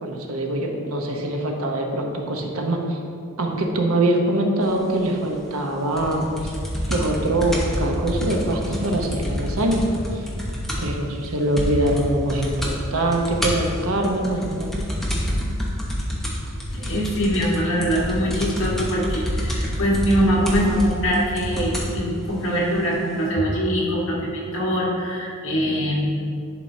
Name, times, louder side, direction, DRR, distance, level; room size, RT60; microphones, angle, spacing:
voice 1, 0.0-3.0 3.4-6.6 6.9-9.8 10.1-10.3 10.8-14.9, right 1 dB, 90° right, 1 dB, 0.9 m, -23 dB
sound 1, 6.0-11.0 11.2-11.3 11.6-12.0 12.3-12.8 13.1-22.0 22.7-22.8, equal, ahead, 0.9 m, -27 dB
voice 2, 16.7-26.1, equal, 65° left, -5 dB, 1.6 m, -23 dB
11.0 x 4.6 x 2.8 m, 2.3 s
head